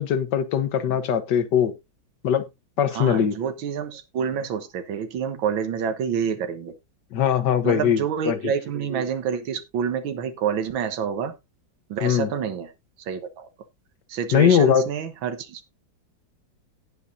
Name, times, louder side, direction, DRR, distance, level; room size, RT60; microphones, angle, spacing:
voice 1, 0.0-1.7 2.2-2.4 2.8-3.4 7.1-8.5 12.0-12.3 14.3-14.9, left 9 dB, 65° left, 1.5 m, -21 dB
voice 2, 2.9-6.7 7.6-11.3 11.9-12.7 13.1-13.5 14.1-15.7, right 7 dB, 80° right, 1.9 m, -28 dB
17.5 x 5.8 x 2.7 m
omnidirectional pair, 2.2 m